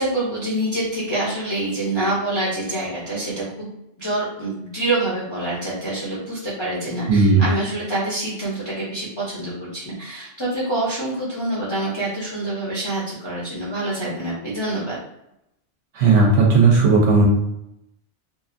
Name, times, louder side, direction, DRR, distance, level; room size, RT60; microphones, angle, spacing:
voice 1, 0.0-3.7 4.0-15.0, right 2 dB, 30° left, -8 dB, 0.6 m, -26 dB
voice 2, 7.1-7.4 16.0-17.2, right 4 dB, 75° right, -2 dB, 0.9 m, -15 dB
2.6 x 2.4 x 2.5 m, 0.83 s
omnidirectional pair, 1.2 m